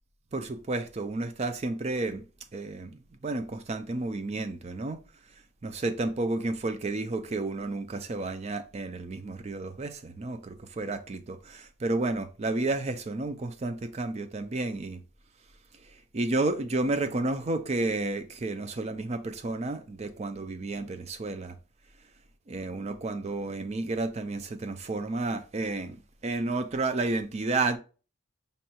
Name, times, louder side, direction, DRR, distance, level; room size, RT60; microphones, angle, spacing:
voice 1, 0.3-2.2 2.5-5.0 5.6-15.0 16.1-21.6 22.5-27.8, right 2 dB, 30° right, 0.4 m, -31 dB
5.3 x 2.3 x 2.8 m
head